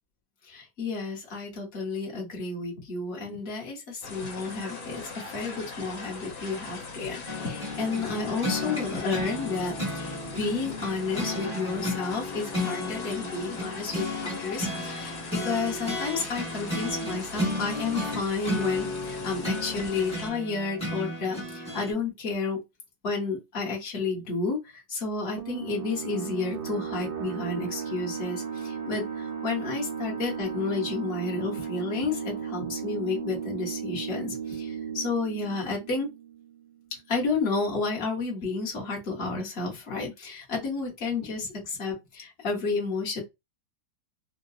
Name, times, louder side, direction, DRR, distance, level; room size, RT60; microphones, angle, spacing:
voice 1, 0.5-22.6 23.0-36.1 37.1-43.2, left 4 dB, 40° left, 1.1 m, -31 dB
sound 1, 4.0-20.3, left 3 dB, 80° left, 1.7 m, -40 dB
sound 2, 7.3-21.9, left 1 dB, 5° left, 0.7 m, -33 dB
sound 3, 25.4-36.7, right 7 dB, 75° right, 1.2 m, -35 dB
3.8 x 2.2 x 2.4 m
omnidirectional pair, 2.1 m